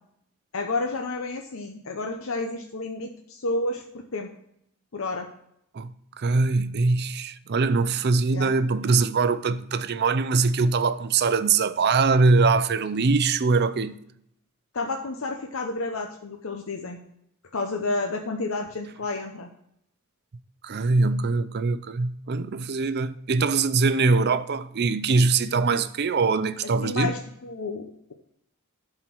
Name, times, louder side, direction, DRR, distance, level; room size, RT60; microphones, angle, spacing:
voice 1, 0.5-4.3 4.9-5.3 8.3-8.5 14.7-17.0 17.5-19.5 26.8-28.1, left 3 dB, 70° left, 0.8 m, -30 dB
voice 2, 5.7-14.0 20.6-27.1, right 4 dB, 50° right, 0.5 m, -22 dB
11.0 x 4.5 x 6.0 m
head